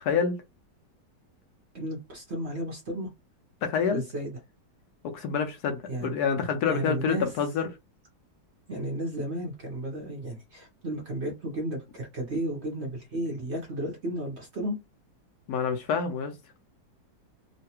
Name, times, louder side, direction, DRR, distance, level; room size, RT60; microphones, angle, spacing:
voice 1, 0.0-0.4 3.6-4.0 5.0-7.6 15.5-16.3, left 6 dB, 70° left, 1.0 m, -27 dB
voice 2, 1.7-3.1 3.9-4.4 5.9-6.2 6.7-7.3 8.7-14.8, right 1 dB, 50° right, 0.9 m, -33 dB
3.2 x 2.2 x 2.9 m
omnidirectional pair, 1.9 m